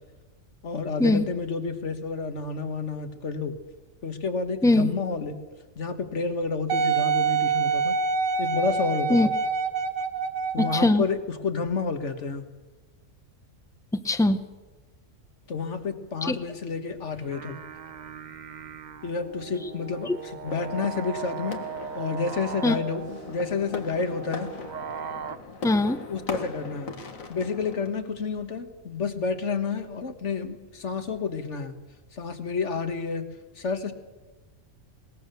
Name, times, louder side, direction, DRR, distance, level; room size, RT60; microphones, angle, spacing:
voice 1, 0.6-3.5 4.0-5.4 5.7-7.9 8.4-9.3 10.5-12.5 15.5-17.6 19.0-21.6 21.9-24.5 26.1-27.0 27.3-31.7 32.1-33.3 33.5-33.9, left 4 dB, 60° left, 8 dB, 1.8 m, -30 dB
Wind instrument woodwind instrument, 6.7-11.0 11.7-11.8, right 5 dB, 75° right, 1.5 m, -26 dB
voice 2, 10.7-11.0 13.9-14.4 16.3-16.4 20.1-20.2 22.6-22.7 25.6-26.0, left 2 dB, 5° left, 11 dB, 0.6 m, -21 dB
sound 1, 17.1-25.4, right 7 dB, 40° right, 0.7 m, -38 dB
sound 2, 20.5-27.9, left 4 dB, 80° left, 2.1 m, -40 dB
21.0 x 19.0 x 6.8 m, 1.2 s
omnidirectional pair, 1.4 m